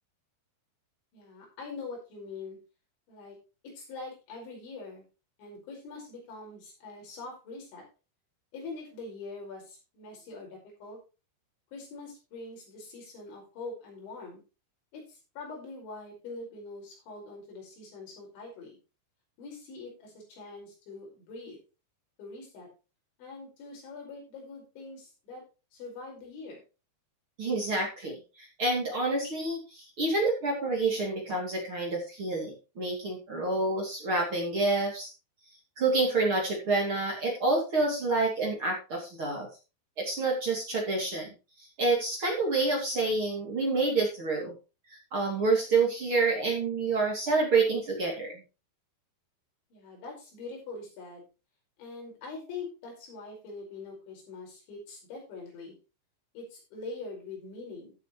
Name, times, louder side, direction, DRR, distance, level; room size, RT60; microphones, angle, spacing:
voice 1, 1.1-2.6 3.1-3.4 3.6-5.1 5.4-7.8 8.5-11.0 11.7-14.4 14.9-18.8 19.4-21.6 22.2-22.7 23.2-25.4 25.7-26.6 49.7-51.3 51.8-55.8 56.3-57.9, left 3 dB, 90° left, 0 dB, 7.4 m, -43 dB
voice 2, 27.4-35.1 35.8-39.5 40.0-44.5 44.9-48.4, right 3 dB, 35° right, -1 dB, 2.9 m, -28 dB
14.5 x 8.2 x 3.1 m, 0.30 s
omnidirectional pair, 5.1 m